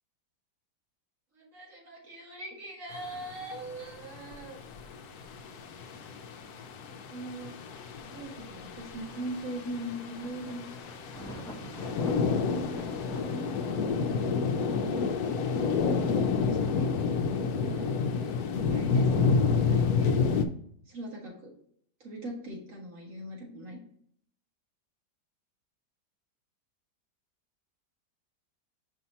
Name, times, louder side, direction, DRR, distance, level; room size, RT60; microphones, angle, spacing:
voice 1, 1.4-4.6 7.1-7.5 8.0-10.9 11.6-11.9 12.3-13.0 13.8-14.7 15.8-16.9 17.6-19.1 19.7-20.1 20.9-21.5 22.0-23.8, right 1 dB, 50° right, -2 dB, 2.2 m, -41 dB
sound 1, 2.9-20.5, left 5 dB, 70° left, 1.1 m, -29 dB
Thunder, 9.1-15.5, equal, ahead, 1.0 m, -47 dB
6.3 x 5.5 x 2.8 m, 0.65 s
omnidirectional pair, 1.9 m